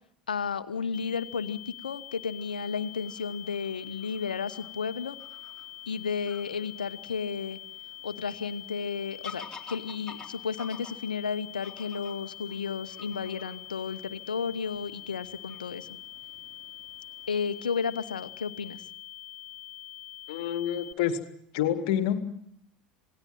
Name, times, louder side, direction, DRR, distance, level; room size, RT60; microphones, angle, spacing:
voice 1, 0.3-5.2 5.9-7.6 8.0-16.0 17.3-18.8, left 6 dB, 75° left, 14 dB, 1.1 m, -33 dB
sound 1, 0.9-20.9, left 13 dB, 35° left, 1.1 m, -45 dB
Fowl / Bird vocalization bird call bird song, 2.4-18.1, left 4 dB, 15° left, 3.8 m, -52 dB
voice 2, 20.3-21.2 21.5-22.2, left 10 dB, 60° left, 11 dB, 1.9 m, -27 dB
27.5 x 18.5 x 7.5 m, 0.69 s
figure-of-eight pair, 75°, 5 cm